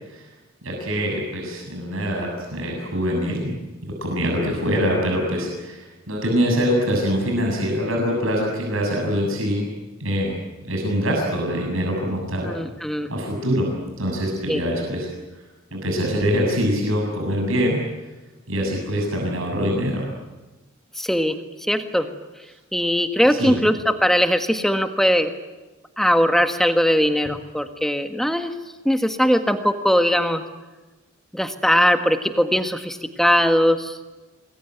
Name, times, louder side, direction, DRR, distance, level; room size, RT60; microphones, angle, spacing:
voice 1, 0.6-3.5 3.8-9.7 10.0-10.3 10.6-12.5 13.1-15.1 15.7-17.8 18.5-20.1 23.3-23.6, equal, 75° right, 0 dB, 7.2 m, -24 dB
voice 2, 12.5-13.1 14.5-14.6 21.0-21.4 21.7-22.1 22.7-25.3 26.0-28.5 28.8-30.4 31.3-34.0, equal, ahead, 7 dB, 1.6 m, -20 dB
27.5 x 21.5 x 9.4 m, 1.2 s
head